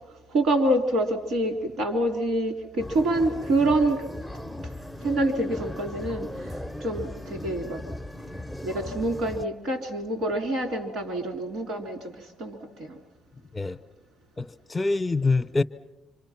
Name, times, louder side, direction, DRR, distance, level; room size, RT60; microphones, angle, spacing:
voice 1, 0.3-4.1 5.0-7.8 8.6-13.0, right 1 dB, 80° right, 5 dB, 3.7 m, -26 dB
sound 1, 2.8-9.5, left 1 dB, ahead, 0.8 m, -37 dB
voice 2, 14.4-15.6, left 3 dB, 30° left, 5 dB, 0.8 m, -25 dB
27.0 x 26.0 x 5.9 m, 0.94 s
cardioid pair, 90°, 0 cm